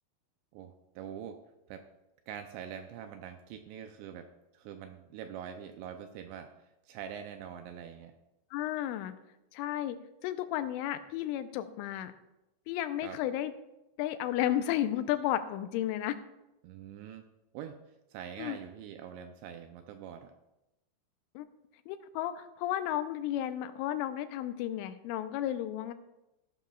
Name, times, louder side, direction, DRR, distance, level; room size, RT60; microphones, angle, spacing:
voice 1, 0.5-1.4 1.7-1.8 2.3-4.3 4.5-8.1 13.0-13.2 16.6-17.2 17.5-17.8 18.1-20.3, right 9 dB, 85° right, 7 dB, 2.6 m, -44 dB
voice 2, 8.5-9.2 9.5-12.1 12.7-13.5 14.0-16.2 18.4-18.6 21.4-21.5 21.9-25.9, left 12 dB, 90° left, 10 dB, 3.1 m, -33 dB
16.5 x 11.5 x 2.3 m, 0.95 s
omnidirectional pair, 5.5 m